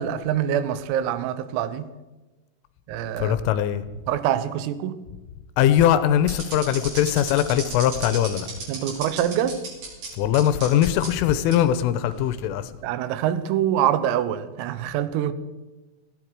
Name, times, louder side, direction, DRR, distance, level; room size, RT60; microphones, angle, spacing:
voice 1, 0.0-1.9 2.9-3.4 4.1-5.1 8.7-9.6 12.8-15.3, right 10 dB, 85° right, 3.6 m, -25 dB
voice 2, 3.2-3.8 5.6-8.5 10.2-12.7, left 11 dB, 85° left, 3.2 m, -21 dB
sound 1, 6.3-10.1 10.3-11.1 11.5-11.6 12.3-12.5, right 4 dB, 55° right, 6.9 m, -34 dB
19.0 x 16.0 x 4.8 m
omnidirectional pair, 6.0 m